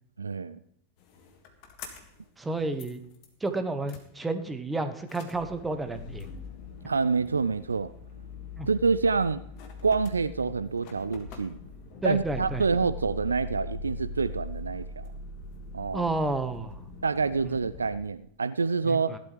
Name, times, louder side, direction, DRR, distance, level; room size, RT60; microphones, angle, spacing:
voice 1, 0.2-0.6 6.8-7.9 8.7-9.4 9.8-11.6 12.0-15.1 15.7-16.1 17.0-19.1, right 4 dB, 75° right, 15 dB, 0.3 m, -27 dB
sound 1, 1.0-2.3 2.5-3.5 3.9-4.0 5.0-17.9, left 3 dB, 45° left, 1.9 m, -42 dB
voice 2, 2.4-3.0 3.4-6.3 8.6-8.7 10.4-10.5 12.0-12.7 15.9-16.8 17.4-17.5 18.8-19.2, right 2 dB, 10° right, 8 dB, 1.0 m, -31 dB
16.5 x 11.5 x 3.3 m, 0.71 s
figure-of-eight pair, 90°, 0 cm